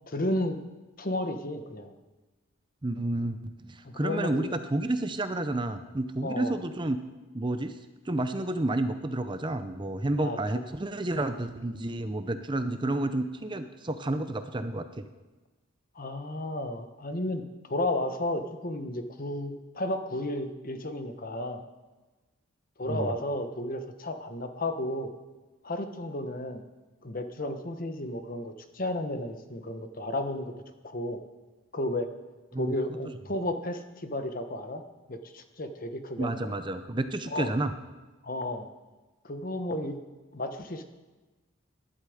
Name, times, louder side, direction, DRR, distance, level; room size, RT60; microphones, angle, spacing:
voice 1, 0.1-0.6 1.0-1.9 3.8-4.5 6.2-6.6 10.2-10.6 15.9-21.6 22.8-25.1 25.6-26.6 27.0-30.5 30.8-31.2 31.7-32.1 32.6-34.8 35.1-36.5 37.3-37.5 38.2-38.7 39.2-40.0 40.3-40.8, left 1 dB, 40° left, 8 dB, 1.1 m, -33 dB
voice 2, 2.8-3.4 3.7-7.0 7.3-7.7 8.1-15.1 22.9-23.2 32.5-32.7 36.2-37.7, right 2 dB, 20° right, 9 dB, 0.6 m, -30 dB
19.0 x 11.5 x 5.1 m, 1.2 s
head